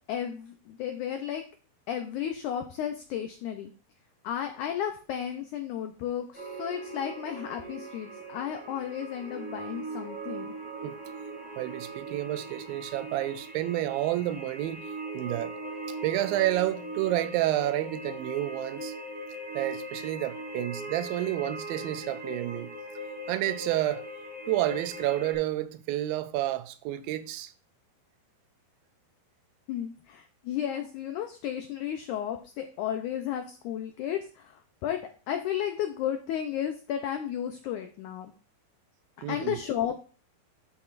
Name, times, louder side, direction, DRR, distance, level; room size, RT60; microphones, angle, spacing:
voice 1, 0.1-1.4 1.9-3.7 4.2-10.5 29.7-38.3 39.3-39.9, left 10 dB, 85° left, 1.7 m, -33 dB
sound 1, 6.3-25.3, right 1 dB, 5° right, 2.1 m, -40 dB
voice 2, 11.6-14.9 15.1-15.5 16.0-18.9 19.6-22.7 23.3-24.1 24.5-27.5 39.2-39.6, right 14 dB, 80° right, 2.2 m, -30 dB
12.0 x 5.8 x 2.5 m
omnidirectional pair, 4.3 m